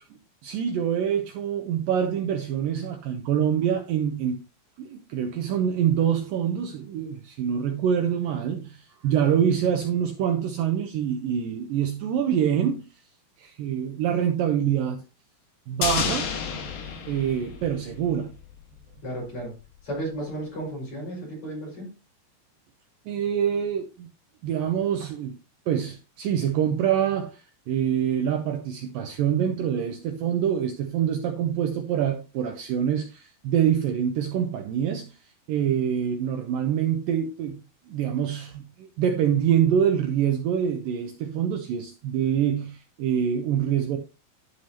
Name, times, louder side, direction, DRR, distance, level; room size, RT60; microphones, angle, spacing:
voice 1, 0.4-4.4 4.8-12.9 13.4-15.0 15.7-16.3 17.1-18.3 23.1-24.1 24.4-25.3 25.7-35.1 35.5-44.0, right 9 dB, 80° right, 2.1 m, -25 dB
sound 1, 15.8-18.2 18.5-18.6, left 6 dB, 65° left, 3.0 m, -30 dB
voice 2, 19.0-19.5 19.8-21.9, right 1 dB, 35° left, 6.0 m, -34 dB
11.0 x 6.3 x 2.9 m
omnidirectional pair, 4.7 m